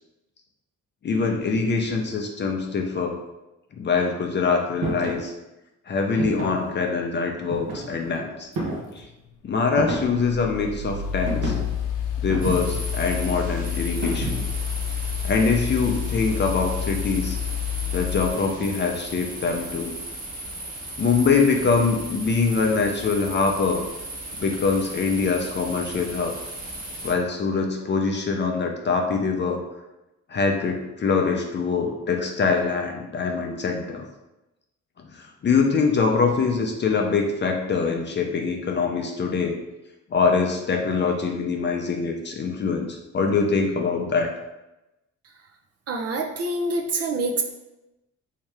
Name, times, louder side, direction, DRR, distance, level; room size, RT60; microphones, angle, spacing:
voice 1, 1.0-3.2 3.8-5.3 5.9-8.5 9.0-9.1 9.4-11.5 12.2-14.4 15.2-17.4 17.9-19.9 21.0-23.8 24.4-26.3 27.0-29.6 30.3-34.0 35.2-39.6 40.1-44.3, left 4 dB, 35° left, 2 dB, 0.5 m, -24 dB
sound 1, 4.8-5.2 6.2-6.7 7.5-8.1 8.6-9.0 9.8-10.3 11.3-11.8 12.3-12.9 14.0-14.6, right 3 dB, 85° right, 0.8 m, -30 dB
sound 2, 8.5-18.3, left 9 dB, 80° left, 0.6 m, -29 dB
sound 3, 12.4-27.1, right 1 dB, 30° right, 1.0 m, -36 dB
voice 2, 45.9-47.4, right 2 dB, 55° right, 2 dB, 0.5 m, -26 dB
3.4 x 2.8 x 3.3 m, 0.97 s
cardioid pair, 90°, 30 cm